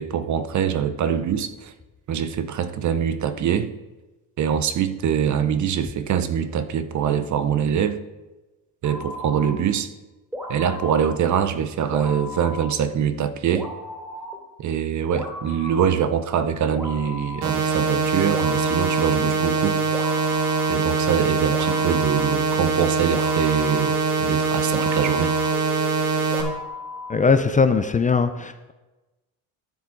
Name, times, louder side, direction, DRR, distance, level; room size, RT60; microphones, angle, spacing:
voice 1, 0.0-1.7 2.1-3.7 4.4-8.0 8.8-9.9 10.5-13.7 14.6-19.8 20.7-25.3, right 8 dB, 50° right, 0.7 m, -24 dB
sound 1, 8.8-9.6 10.3-11.2 11.9-12.8 13.5-14.4 15.1-16.0 16.7-17.6 18.3-19.5 19.9-21.2 21.5-27.6, left 1 dB, 5° right, 2.6 m, -35 dB
sound 2, 17.4-26.4, right 4 dB, 85° right, 1.7 m, -23 dB
voice 2, 27.1-28.7, left 5 dB, 20° left, 0.5 m, -20 dB
12.0 x 7.1 x 3.9 m
cardioid pair, 110°, 39 cm